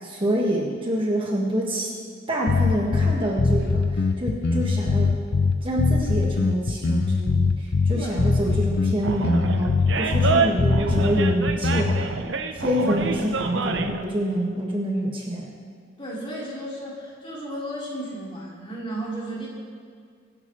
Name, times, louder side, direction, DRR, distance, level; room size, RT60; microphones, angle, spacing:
voice 1, 0.0-1.9 2.3-5.1 5.6-12.0 12.5-15.5, equal, 30° right, -3 dB, 1.8 m, -26 dB
sound 1, 2.5-12.1, left 4 dB, 65° left, 0.6 m, -22 dB
Animal, 9.0-14.0, right 4 dB, 70° right, 0.9 m, -27 dB
voice 2, 16.0-19.5, right 1 dB, 30° left, -6 dB, 4.2 m, -34 dB
23.5 x 11.0 x 3.3 m, 2.1 s
head